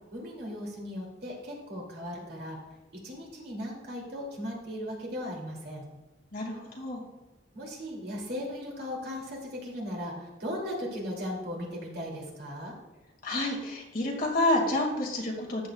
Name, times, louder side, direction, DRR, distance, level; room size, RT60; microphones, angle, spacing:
voice 1, 0.1-2.6 2.9-5.9 7.5-12.7, equal, 55° right, -3 dB, 3.0 m, -37 dB
voice 2, 6.3-7.0 13.2-15.7, left 1 dB, 50° left, -1 dB, 2.4 m, -29 dB
14.5 x 9.1 x 2.5 m, 1.1 s
head